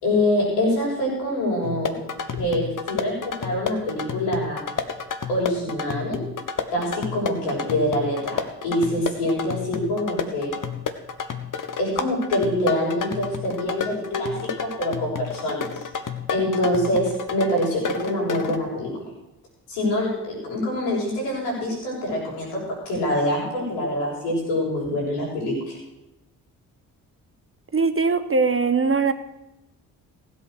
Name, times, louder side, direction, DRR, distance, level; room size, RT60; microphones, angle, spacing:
voice 1, 0.0-1.9 2.4-4.6 5.3-6.2 6.7-10.5 11.8-15.8 16.3-18.9 19.7-22.6 22.8-25.8, left 1 dB, 80° left, -4 dB, 6.0 m, -25 dB
sound 1, 1.6-18.6, left 6 dB, 45° left, 1.5 m, -31 dB
voice 2, 27.7-29.1, right 4 dB, 30° right, 10 dB, 1.2 m, -21 dB
16.0 x 8.3 x 6.5 m, 0.92 s
hypercardioid pair, 45°, 44 cm